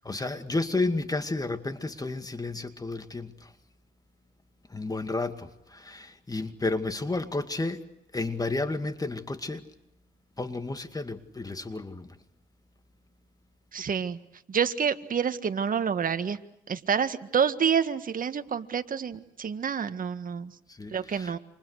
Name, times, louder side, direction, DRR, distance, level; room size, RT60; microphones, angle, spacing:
voice 1, 0.0-3.5 4.7-7.9 8.1-9.6 10.4-12.2 20.7-21.4, left 2 dB, 20° left, 2.2 m, -32 dB
voice 2, 13.7-14.2 14.5-16.4 16.7-20.5 20.9-21.4, right 7 dB, 45° right, 1.8 m, -28 dB
29.5 x 26.5 x 6.5 m
cardioid pair, 90°, 20 cm